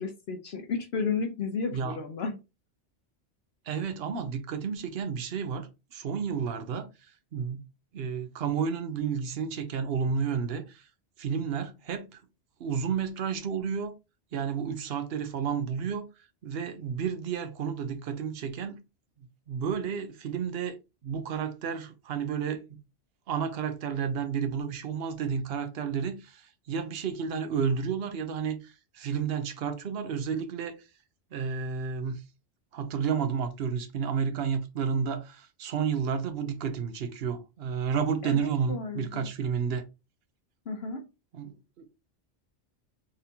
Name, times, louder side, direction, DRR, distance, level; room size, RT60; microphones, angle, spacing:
voice 1, 0.0-2.4 38.2-39.3 40.7-41.0, left 4 dB, 60° left, 1.0 m, -33 dB
voice 2, 3.7-6.9 7.3-7.6 7.9-10.8 11.2-12.2 12.6-13.9 14.3-16.1 16.4-18.8 19.5-20.8 21.0-22.8 23.3-30.7 31.3-32.2 32.7-39.8 41.3-41.9, right 6 dB, 60° right, 0.9 m, -31 dB
4.1 x 3.6 x 2.7 m
omnidirectional pair, 1.2 m